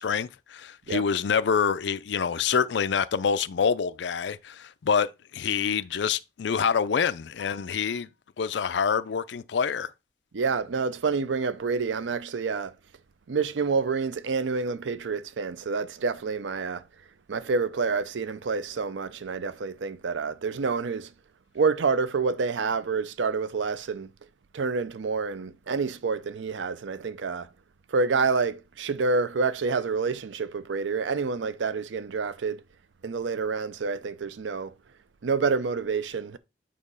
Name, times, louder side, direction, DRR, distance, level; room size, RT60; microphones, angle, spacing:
voice 1, 0.0-8.1 8.4-9.9, left 6 dB, 75° left, 0.4 m, -26 dB
voice 2, 10.3-12.7 13.3-16.8 17.3-21.1 21.5-24.1 24.5-27.5 27.9-32.6 33.0-34.7 35.2-36.4, right 4 dB, 90° right, 0.5 m, -28 dB
8.5 x 2.9 x 5.4 m
head